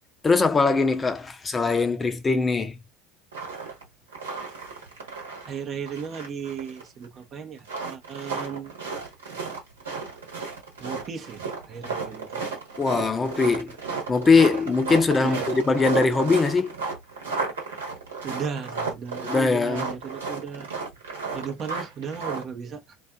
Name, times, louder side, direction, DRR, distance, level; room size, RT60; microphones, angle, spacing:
voice 1, 0.2-2.8 12.8-13.8 14.1-16.7 19.2-19.9, left 4 dB, 20° left, 0.6 m, -21 dB
sound 1, 3.3-3.8 4.1-5.6 5.9-7.0 7.6-22.4, right 4 dB, 80° right, 1.0 m, -33 dB
voice 2, 5.5-8.7 10.8-12.4 15.2-15.5 18.2-20.7 21.3-23.0, right 6 dB, 40° right, 0.6 m, -35 dB
2.4 x 2.4 x 2.2 m
figure-of-eight pair, 70°, 0 cm